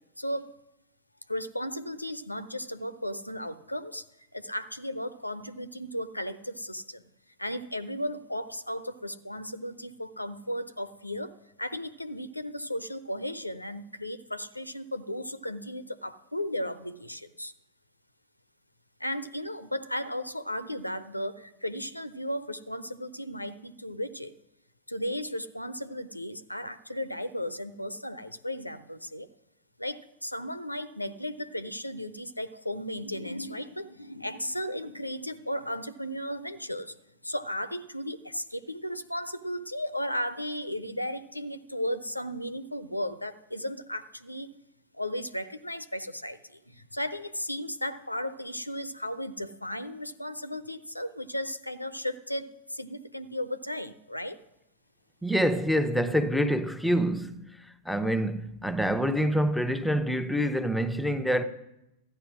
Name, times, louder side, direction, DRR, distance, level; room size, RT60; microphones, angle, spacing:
voice 1, 0.2-0.5 1.3-4.1 4.3-7.0 7.4-11.3 11.6-17.5 19.0-24.3 24.9-29.3 29.8-37.0 37.2-44.5 44.9-54.4, equal, 85° left, 0.7 m, -35 dB
voice 2, 55.2-57.4 57.8-61.4, equal, ahead, 0.9 m, -26 dB
14.0 x 10.0 x 6.1 m
figure-of-eight pair, 90°, 0 cm